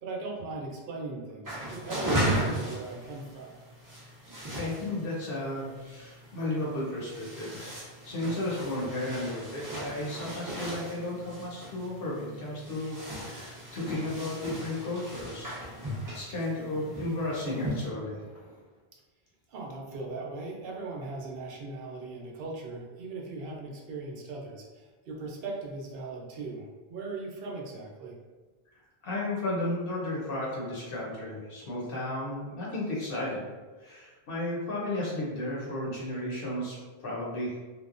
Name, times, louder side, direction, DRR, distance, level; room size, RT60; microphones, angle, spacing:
voice 1, 0.0-3.6 19.5-28.2, right 3 dB, 70° right, 0 dB, 0.8 m, -39 dB
sound 1, 1.4-17.9, right 1 dB, 25° right, 0.5 m, -37 dB
voice 2, 4.6-7.8 8.0-15.5 15.9-18.2 29.0-33.5 33.8-37.5, left 1 dB, 65° left, -5 dB, 0.9 m, -34 dB
Fireworks, 12.8-12.9 13.4-13.5 13.9-17.6 17.9-18.8, equal, 15° left, 0.7 m, -47 dB
2.9 x 2.0 x 2.4 m, 1.3 s
omnidirectional pair, 1.1 m